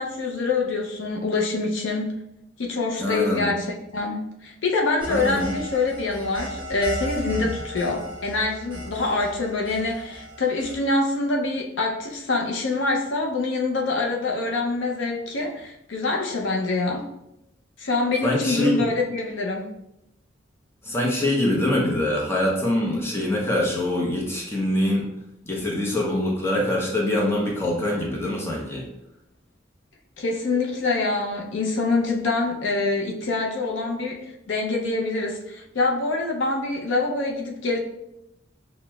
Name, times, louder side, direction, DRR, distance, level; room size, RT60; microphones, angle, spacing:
voice 1, 0.0-2.1 2.6-17.1 17.8-19.7 30.2-37.8, left 3 dB, 75° left, 1 dB, 0.5 m, -25 dB
voice 2, 3.0-3.5 5.1-5.5 7.3-7.5 18.2-18.9 20.8-25.1 25.4-28.9, left 1 dB, 15° left, -3 dB, 0.7 m, -24 dB
sound 1, 5.0-10.8, equal, 30° right, 1.3 m, -36 dB
5.8 x 2.1 x 2.2 m, 0.85 s
head